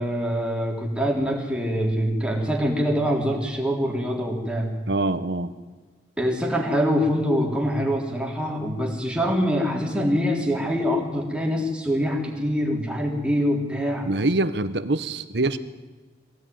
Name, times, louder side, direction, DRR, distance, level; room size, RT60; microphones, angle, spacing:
voice 1, 0.0-4.7 6.2-14.1, equal, 5° right, -1 dB, 3.5 m, -24 dB
voice 2, 4.9-5.5 14.0-15.6, right 2 dB, 65° right, 13 dB, 1.1 m, -24 dB
23.0 x 17.0 x 9.4 m, 1.3 s
head